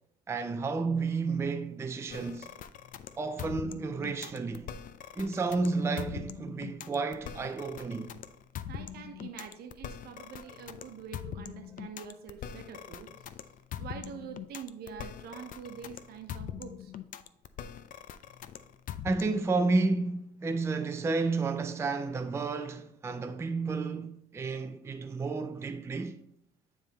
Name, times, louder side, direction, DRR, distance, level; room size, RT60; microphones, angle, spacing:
voice 1, 0.3-2.5 3.2-4.7 5.2-8.1 19.0-26.2, right 3 dB, 15° right, 0.4 m, -31 dB
sound 1, 2.1-19.5, left 9 dB, 55° left, 0.5 m, -42 dB
voice 2, 8.7-13.1 13.8-16.9, right 7 dB, 70° right, 0.9 m, -45 dB
9.3 x 3.5 x 4.1 m
cardioid pair, 110°, 17 cm